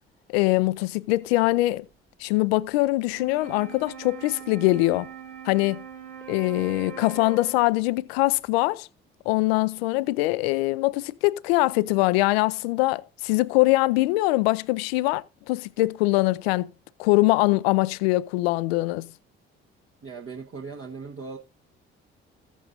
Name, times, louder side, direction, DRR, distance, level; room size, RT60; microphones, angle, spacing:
voice 1, 0.3-1.8 2.2-5.1 5.4-5.8 6.3-8.9 9.3-16.7 17.0-19.1, left 20 dB, 75° left, 0.5 m, -23 dB
Wind instrument woodwind instrument, 3.1-7.9, right 6 dB, 75° right, 2.7 m, -42 dB
voice 2, 20.0-21.4, right 4 dB, 45° right, 1.4 m, -38 dB
14.0 x 8.2 x 2.7 m
figure-of-eight pair, 45°, 31 cm